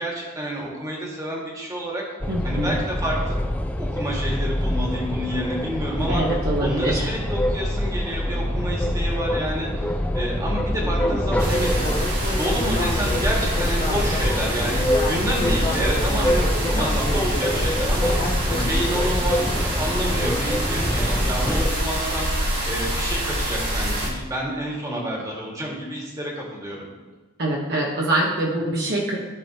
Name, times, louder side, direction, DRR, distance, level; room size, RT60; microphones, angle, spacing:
voice 1, 0.0-2.0 2.4-3.3 3.7-6.2 6.6-11.9 12.2-18.2 18.5-22.3 22.7-26.9, equal, 15° right, -4 dB, 1.8 m, -29 dB
sound 1, 2.2-21.7, left 1 dB, 5° left, 0.3 m, -25 dB
voice 2, 2.3-2.8 6.1-7.1 27.4-29.2, right 1 dB, 45° right, -3 dB, 1.1 m, -24 dB
Speech synthesizer, 10.8-19.1, left 2 dB, 30° left, 1.0 m, -31 dB
sound 2, 11.4-24.1, right 1 dB, 85° right, 2.8 m, -26 dB
14.5 x 5.1 x 2.9 m, 1.2 s
head